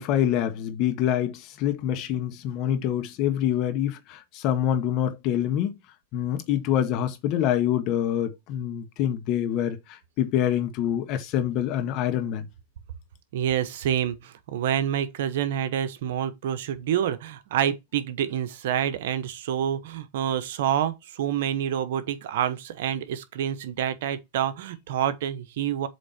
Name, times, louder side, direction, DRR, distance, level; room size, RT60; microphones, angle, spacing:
voice 1, 0.0-5.8 6.1-12.5, left 10 dB, 45° left, 1.6 m, -26 dB
voice 2, 13.3-25.9, right 10 dB, 65° right, 1.0 m, -27 dB
7.8 x 3.7 x 4.3 m
hypercardioid pair, 110°, 0 cm